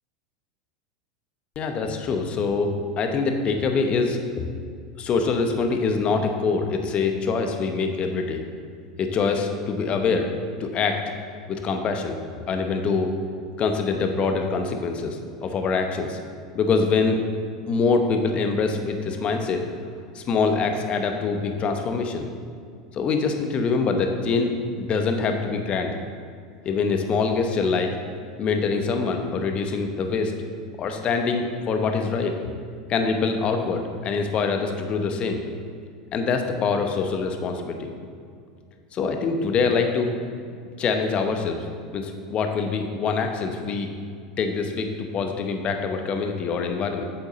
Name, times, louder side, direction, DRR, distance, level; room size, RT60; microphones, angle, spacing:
voice 1, 1.6-4.2 5.0-8.4 9.0-10.3 10.6-11.0 11.5-12.2 12.5-13.1 13.6-16.2 16.5-17.2 17.7-19.6 20.1-22.3 22.9-24.5 24.8-26.0 26.6-27.9 28.4-30.3 30.8-32.3 32.9-35.4 36.1-37.9 38.9-40.1 40.8-41.7 41.9-43.9 44.4-44.9 45.1-47.0, left 4 dB, 35° left, 5 dB, 1.0 m, -24 dB
8.9 x 7.0 x 3.9 m, 2.2 s
hypercardioid pair, 90°, 3 cm